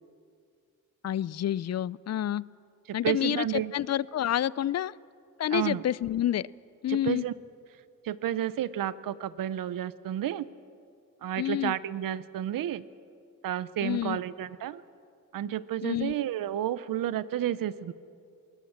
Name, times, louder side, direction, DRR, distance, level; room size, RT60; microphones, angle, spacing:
voice 1, 1.0-2.4 2.9-4.9 5.4-6.5 6.8-7.2 11.4-11.7 13.8-14.2 15.8-16.1, left 11 dB, 50° left, 22 dB, 0.4 m, -28 dB
voice 2, 3.0-3.7 5.5-5.8 6.9-7.3 8.0-10.5 11.2-12.8 13.4-14.8 15.3-17.9, right 11 dB, 90° right, 16 dB, 0.7 m, -31 dB
21.0 x 19.5 x 7.3 m, 2.4 s
cardioid pair, 80°, 33 cm